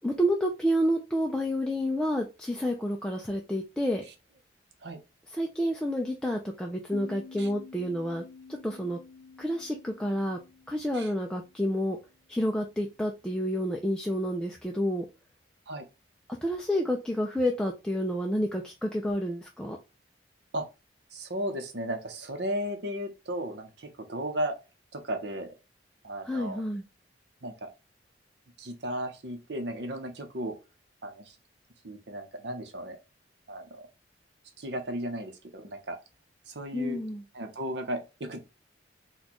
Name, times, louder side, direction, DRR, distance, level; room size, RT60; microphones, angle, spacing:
voice 1, 0.0-4.0 5.4-8.2 8.6-9.0 9.4-10.4 10.7-12.0 12.3-15.1 16.4-19.8 26.2-26.8 36.7-37.2, equal, 5° left, 0.3 m, -29 dB
sound 1, 6.9-12.2, left 4 dB, 60° left, 0.5 m, -50 dB
voice 2, 21.1-24.5 24.9-25.5 26.0-26.6 27.4-27.7 28.6-30.6 31.0-31.4 31.8-33.0 33.5-33.8 34.6-36.0 36.5-37.0 37.3-38.4, right 1 dB, 65° right, 0.8 m, -35 dB
4.2 x 2.3 x 2.9 m
head